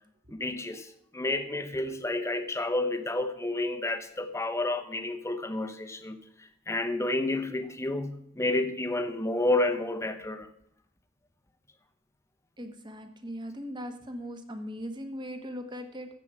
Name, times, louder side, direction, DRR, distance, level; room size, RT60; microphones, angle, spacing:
voice 1, 0.3-6.2 6.7-10.5, left 2 dB, 15° left, 0.9 m, -30 dB
voice 2, 12.6-16.1, equal, 25° right, 1.3 m, -39 dB
14.0 x 7.9 x 4.8 m
head